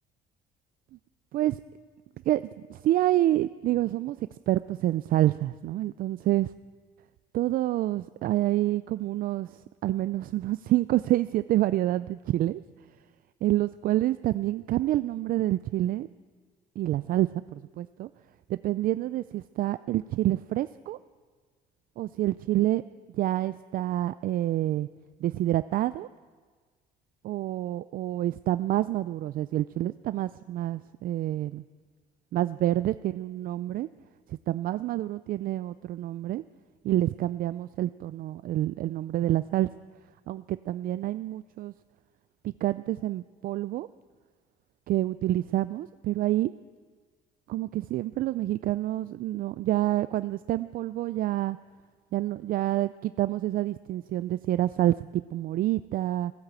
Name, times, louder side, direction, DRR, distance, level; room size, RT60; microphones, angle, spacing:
voice 1, 2.7-6.5 7.3-12.6 13.4-16.1 16.8-18.1 18.5-21.0 22.0-22.8 23.1-24.9 25.2-26.1 27.2-31.6 32.3-33.9 34.3-36.4 36.8-39.7 40.3-41.7 42.6-43.9 44.9-46.5 47.5-51.6 52.1-56.3, right 14 dB, 60° right, 14 dB, 0.4 m, -27 dB
17.0 x 9.0 x 8.2 m, 1.5 s
cardioid pair, 110°, 17 cm